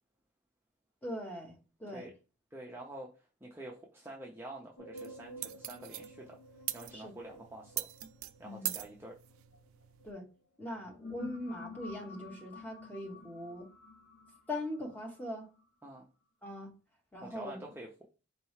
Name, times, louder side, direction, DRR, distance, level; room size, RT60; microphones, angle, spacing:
voice 1, 1.0-2.1 6.9-7.1 8.4-8.8 10.0-10.3 10.6-13.7 14.5-15.5 16.4-16.7 17.1-17.6, left 1 dB, 10° left, 0.9 m, -41 dB
voice 2, 2.5-6.4 6.7-7.9 8.4-9.1 15.8-16.1 17.2-18.1, right 1 dB, 10° right, 0.4 m, -47 dB
sound 1, 4.8-10.0 10.6-15.6, left 2 dB, 75° left, 0.9 m, -51 dB
sound 2, 5.0-10.1, right 14 dB, 80° right, 0.4 m, -43 dB
4.5 x 3.1 x 3.1 m
head